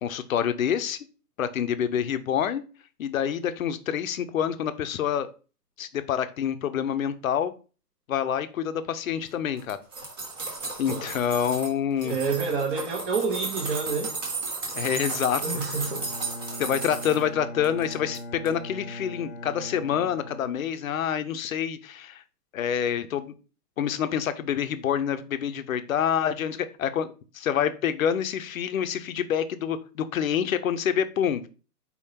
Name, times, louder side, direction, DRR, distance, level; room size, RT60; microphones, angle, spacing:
voice 1, 0.0-1.0 1.4-2.6 3.0-5.3 5.8-7.5 8.1-9.8 10.8-12.2 14.8-15.4 16.6-22.2 22.5-23.3 23.8-27.1 27.3-31.5, left 9 dB, 60° left, 11 dB, 0.6 m, -27 dB
sound 1, 9.6-11.7 12.0-17.2 17.6-18.2 18.4-18.5, right 4 dB, 15° right, 0.6 m, -34 dB
voice 2, 12.0-14.1 15.4-16.1, right 4 dB, 40° right, 0 dB, 1.1 m, -28 dB
Bowed string instrument, 15.7-21.1, left 1 dB, 20° left, 0.8 m, -40 dB
4.3 x 3.6 x 2.8 m, 0.35 s
hypercardioid pair, 150°, 48 cm